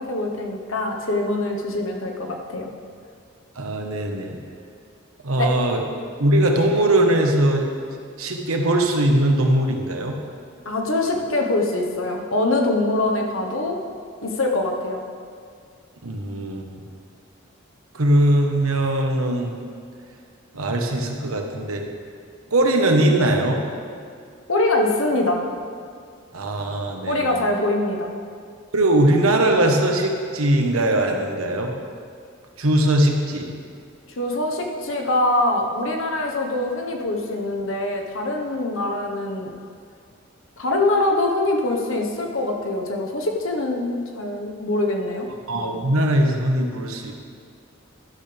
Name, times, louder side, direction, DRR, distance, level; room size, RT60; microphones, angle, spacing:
voice 1, 0.0-2.7 5.4-5.5 10.6-13.8 14.2-15.0 24.5-25.4 27.1-28.1 34.2-39.5 40.6-45.3, left 2 dB, 70° left, 1 dB, 1.2 m, -23 dB
voice 2, 3.6-4.4 5.2-5.8 6.2-7.6 8.2-10.2 16.0-16.8 17.9-19.6 20.5-21.8 22.5-23.6 26.3-27.4 28.7-31.7 32.6-33.5 45.5-47.1, right 1 dB, 90° right, 2 dB, 1.3 m, -20 dB
12.5 x 11.5 x 3.5 m, 2.2 s
head